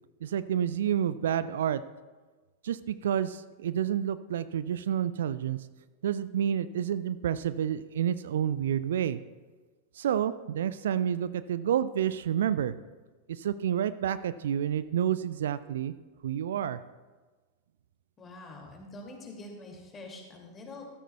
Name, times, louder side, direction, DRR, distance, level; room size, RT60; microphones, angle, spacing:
voice 1, 0.2-1.8 2.6-5.6 6.0-9.2 10.0-12.8 13.3-15.9 16.2-16.8, right 9 dB, 60° right, 15 dB, 0.3 m, -29 dB
voice 2, 18.2-20.8, left 2 dB, 20° left, 1 dB, 2.3 m, -45 dB
14.0 x 13.0 x 2.3 m, 1.3 s
figure-of-eight pair, 90°, 0 cm